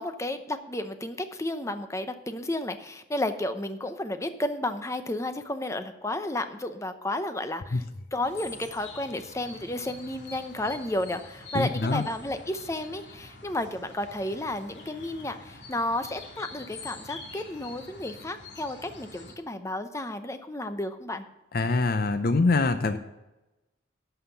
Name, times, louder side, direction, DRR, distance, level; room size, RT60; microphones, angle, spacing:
voice 1, 0.0-7.8 8.1-21.2, left 1 dB, 15° left, 9 dB, 0.7 m, -32 dB
sound 1, 8.2-19.3, left 3 dB, 70° left, 2.0 m, -46 dB
voice 2, 11.5-12.0 21.5-23.0, left 3 dB, 50° left, 9 dB, 0.6 m, -24 dB
11.5 x 5.8 x 7.0 m, 0.99 s
head